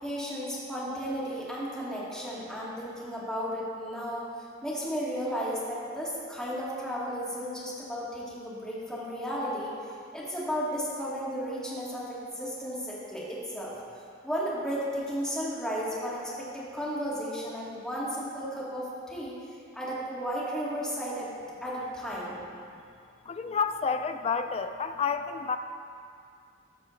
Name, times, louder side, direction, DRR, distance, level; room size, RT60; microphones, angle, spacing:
voice 1, 0.0-4.2 4.6-9.7 10.1-13.7 14.2-19.3 19.7-21.3 21.6-22.4, equal, 5° left, -9 dB, 2.0 m, -34 dB
voice 2, 23.3-25.6, left 5 dB, 35° left, 8 dB, 0.3 m, -29 dB
14.0 x 6.0 x 3.2 m, 2.4 s
head